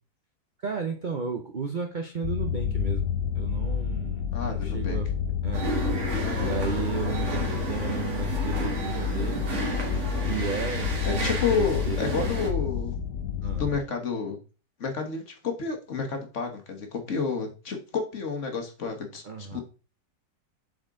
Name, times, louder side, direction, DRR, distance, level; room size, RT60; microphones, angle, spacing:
voice 1, 0.6-5.1 5.4-5.8 6.4-9.6 10.2-12.3 13.4-13.7 19.2-19.6, right 5 dB, 65° right, 4 dB, 0.4 m, -34 dB
sound 1, 2.2-13.8, left 8 dB, 65° left, 1.2 m, -29 dB
voice 2, 4.3-5.0 6.2-6.5 11.0-13.0 13.6-14.4 14.8-19.6, left 5 dB, 45° left, 4 dB, 1.5 m, -30 dB
sound 2, 5.5-12.5, right 3 dB, 40° right, 1.8 m, -32 dB
7.7 x 4.4 x 3.7 m, 0.35 s
omnidirectional pair, 1.9 m